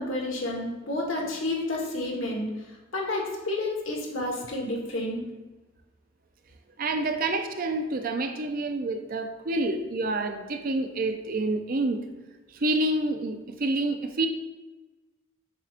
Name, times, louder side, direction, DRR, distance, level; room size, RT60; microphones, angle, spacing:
voice 1, 0.0-5.3, left 2 dB, 85° left, -2 dB, 1.5 m, -30 dB
voice 2, 6.8-12.0 12.5-14.3, right 2 dB, 45° right, 6 dB, 0.5 m, -28 dB
7.3 x 5.7 x 2.5 m, 1.2 s
head